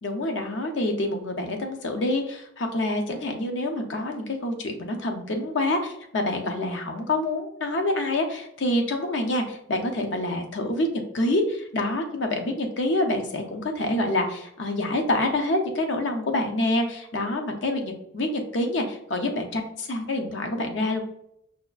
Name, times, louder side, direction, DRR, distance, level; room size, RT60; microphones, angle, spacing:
voice 1, 0.0-10.9 11.1-21.0, left 1 dB, 70° left, 4 dB, 0.6 m, -27 dB
5.4 x 2.4 x 2.3 m, 0.75 s
head